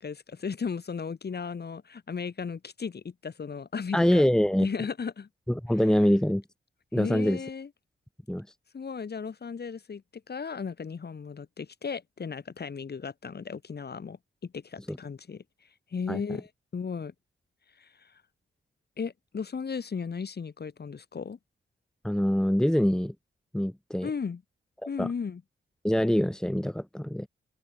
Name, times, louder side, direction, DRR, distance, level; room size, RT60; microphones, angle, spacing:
voice 1, 0.0-4.2 4.6-5.3 6.9-7.7 8.7-15.4 15.9-16.5 16.7-17.1 17.8-18.1 19.0-21.4 24.0-24.4 24.9-25.4, left 5 dB, 50° left, 6.8 m, -35 dB
voice 2, 3.9-4.7 5.5-6.4 6.9-7.4 8.3-8.5 14.9-15.0 16.1-16.4 22.0-23.1 23.5-24.1 24.8-25.1 25.8-27.3, equal, 5° left, 2.2 m, -25 dB
open air
cardioid pair, 95°, 21 cm